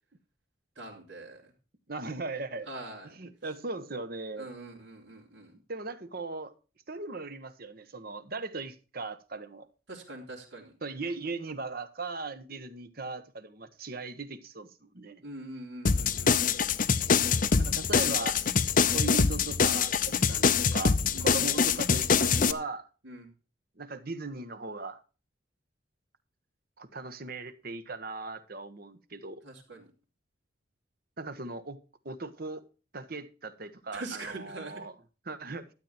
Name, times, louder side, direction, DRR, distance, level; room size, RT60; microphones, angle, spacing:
voice 1, 0.8-1.5 2.7-3.2 4.4-5.5 9.9-10.7 15.2-16.6 21.1-21.3 23.0-23.3 29.4-29.9 33.9-34.8, right 2 dB, 80° right, 3.5 m, -43 dB
voice 2, 1.9-2.7 3.1-4.5 5.7-6.5 6.9-9.7 10.8-15.2 17.6-18.4 18.9-22.9 23.8-25.0 26.8-29.4 31.2-31.8 32.0-32.6 32.9-34.9 35.3-35.7, right 3 dB, 50° right, 1.3 m, -38 dB
sound 1, 15.9-22.5, left 5 dB, 45° left, 0.7 m, -24 dB
13.0 x 9.0 x 4.3 m
head